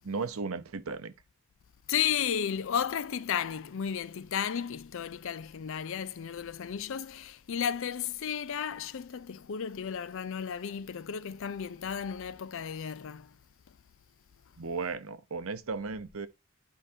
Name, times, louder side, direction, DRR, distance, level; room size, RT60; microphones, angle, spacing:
voice 1, 0.0-1.1 14.6-16.3, right 4 dB, 75° right, 0.8 m, -35 dB
voice 2, 1.9-13.3, left 8 dB, 65° left, 0.5 m, -33 dB
11.0 x 4.7 x 2.8 m
head